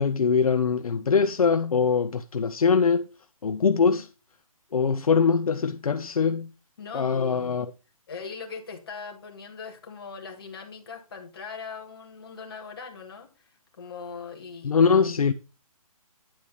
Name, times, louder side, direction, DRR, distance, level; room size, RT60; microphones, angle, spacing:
voice 1, 0.0-3.0 3.4-4.1 4.7-6.5 6.9-7.6 14.6-15.3, left 5 dB, 75° left, 0.9 m, -22 dB
voice 2, 6.8-7.6 8.1-14.7, left 5 dB, 40° left, 2.1 m, -40 dB
10.5 x 4.7 x 5.5 m
hypercardioid pair, 170°, 19 cm